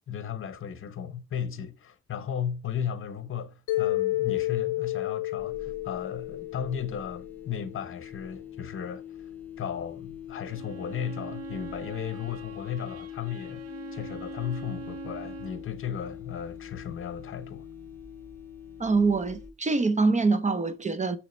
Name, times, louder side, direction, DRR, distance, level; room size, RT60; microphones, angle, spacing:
voice 1, 0.1-9.0 9.6-13.6 13.9-17.7, left 8 dB, 45° left, 0.9 m, -35 dB
Mallet percussion, 3.7-7.8, left 17 dB, 80° left, 0.5 m, -31 dB
sound 1, 5.4-19.5, left 9 dB, 5° left, 2.8 m, -43 dB
Bowed string instrument, 10.3-15.7, right 8 dB, 50° right, 1.0 m, -44 dB
voice 2, 18.8-21.2, right 3 dB, 25° right, 0.6 m, -24 dB
6.4 x 3.2 x 5.0 m
cardioid pair, 90°, 30 cm